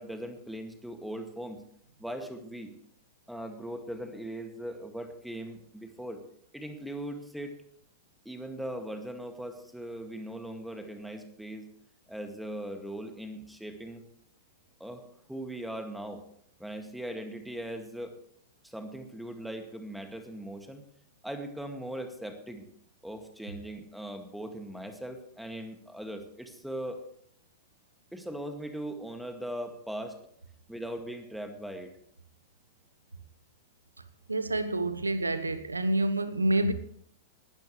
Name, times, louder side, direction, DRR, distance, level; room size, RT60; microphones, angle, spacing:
voice 1, 0.0-1.6 2.0-2.7 3.3-6.2 6.5-7.6 8.3-11.7 12.1-14.0 14.8-15.0 15.3-16.2 16.6-18.1 18.6-20.8 21.2-22.6 23.0-27.0 28.1-30.2 30.7-31.9, right 1 dB, ahead, 2.1 m, -39 dB
voice 2, 34.3-36.7, right 1 dB, 85° right, 1.1 m, -28 dB
20.0 x 12.5 x 3.2 m
figure-of-eight pair, 100°, 0 cm